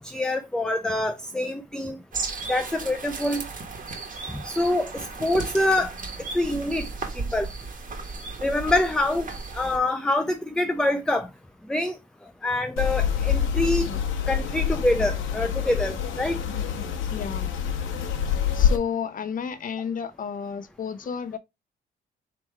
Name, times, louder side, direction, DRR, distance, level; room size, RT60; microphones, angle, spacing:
voice 1, 0.0-2.0 2.5-3.5 4.3-5.9 6.3-6.9 7.1-7.5 8.4-9.3 9.5-11.3 11.7-12.0 12.4-13.9 14.3-16.4, left 1 dB, 5° left, 0.4 m, -25 dB
sound 1, 2.1-9.8, right 4 dB, 45° right, 1.4 m, -35 dB
sound 2, 12.8-18.8, left 8 dB, 85° left, 1.0 m, -26 dB
voice 2, 17.1-17.5 18.5-21.4, left 7 dB, 45° left, 0.7 m, -32 dB
3.4 x 3.1 x 4.5 m
cardioid pair, 90°, 20 cm